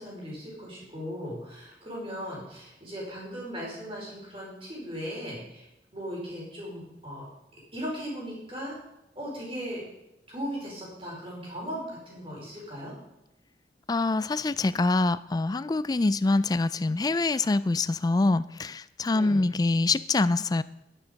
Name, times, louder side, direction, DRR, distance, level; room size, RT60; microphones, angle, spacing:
voice 1, 0.0-5.7 5.9-7.2 7.5-8.8 9.1-9.8 10.3-12.9 19.1-19.5, equal, 30° right, -3 dB, 4.8 m, -37 dB
voice 2, 13.9-20.6, left 3 dB, 20° left, 16 dB, 0.3 m, -25 dB
11.5 x 10.5 x 5.2 m, 0.91 s
head